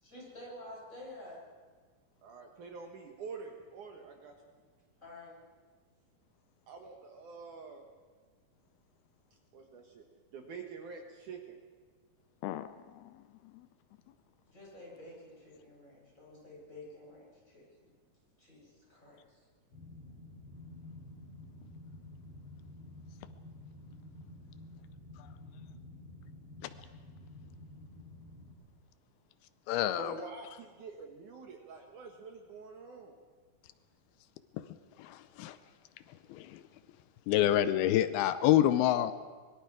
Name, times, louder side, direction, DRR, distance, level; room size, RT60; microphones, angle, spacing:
voice 1, 0.0-1.4 5.0-5.4 14.5-17.9 18.4-19.4, left 1 dB, 20° left, -5 dB, 8.2 m, -50 dB
voice 2, 2.2-4.3 6.7-7.8 9.5-10.0 10.3-11.6 30.0-33.2, right 4 dB, 60° right, 3 dB, 2.6 m, -46 dB
sound 1, 19.7-28.5, left 2 dB, 70° left, 5.5 m, -50 dB
voice 3, 29.7-30.1 35.0-35.6 36.3-36.6 37.3-39.1, left 12 dB, 85° left, 12 dB, 2.7 m, -27 dB
25.0 x 21.5 x 4.9 m, 1.5 s
omnidirectional pair, 4.3 m